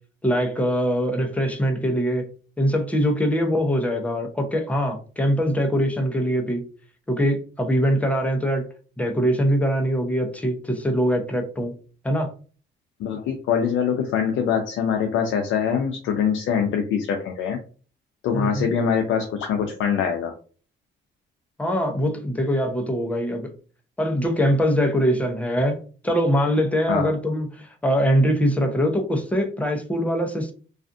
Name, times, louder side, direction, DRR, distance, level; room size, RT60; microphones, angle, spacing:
voice 1, 0.2-2.3 2.6-6.6 7.1-8.7 9.0-11.7 12.0-12.3 18.3-18.7 21.6-23.5 24.0-25.8 26.0-30.5, equal, 5° left, 3 dB, 0.6 m, -22 dB
voice 2, 13.0-17.6 18.2-20.3 26.9-27.1, left 7 dB, 85° left, 3 dB, 0.5 m, -23 dB
2.4 x 2.4 x 2.5 m, 0.39 s
cardioid pair, 90°, 20 cm